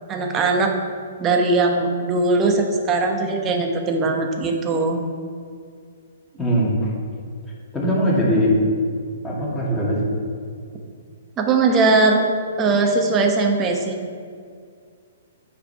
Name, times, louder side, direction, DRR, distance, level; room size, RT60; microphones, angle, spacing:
voice 1, 0.1-0.7 1.2-5.0 11.4-12.3 12.6-14.0, right 3 dB, 25° right, 3 dB, 1.1 m, -20 dB
voice 2, 6.4-6.9 7.7-8.6 9.2-10.0, equal, 10° left, -5 dB, 2.2 m, -20 dB
9.2 x 5.0 x 4.8 m, 2.2 s
hypercardioid pair, 125°, 0 cm